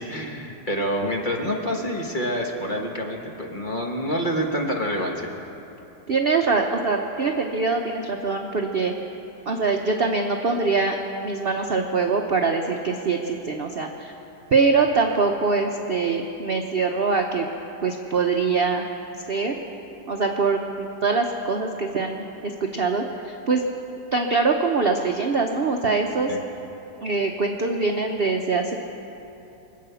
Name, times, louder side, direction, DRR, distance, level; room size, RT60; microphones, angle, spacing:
voice 1, 0.0-5.3 26.3-26.4, equal, 30° left, 0 dB, 1.2 m, -27 dB
voice 2, 6.1-8.9 9.5-11.0 11.2-14.1 14.5-17.5 17.8-18.9 19.3-19.6 20.1-23.6 24.1-26.3 27.0-28.8, right 4 dB, 65° right, 2 dB, 0.5 m, -23 dB
24.0 x 8.6 x 6.9 m, 3.0 s
omnidirectional pair, 2.2 m